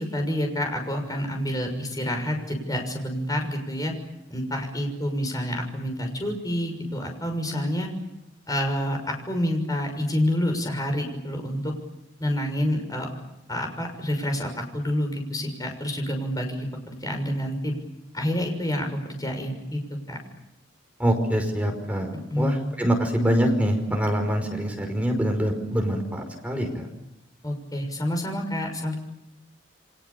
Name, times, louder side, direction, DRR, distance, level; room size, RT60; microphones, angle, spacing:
voice 1, 0.0-3.9 4.3-7.9 8.5-11.7 12.2-13.1 13.5-17.7 18.1-19.8 20.1-20.2 22.3-22.6 27.4-29.0, equal, 20° left, 4 dB, 6.4 m, -28 dB
voice 2, 21.0-26.9, equal, 5° right, 3 dB, 5.4 m, -25 dB
30.0 x 24.0 x 7.1 m, 0.88 s
head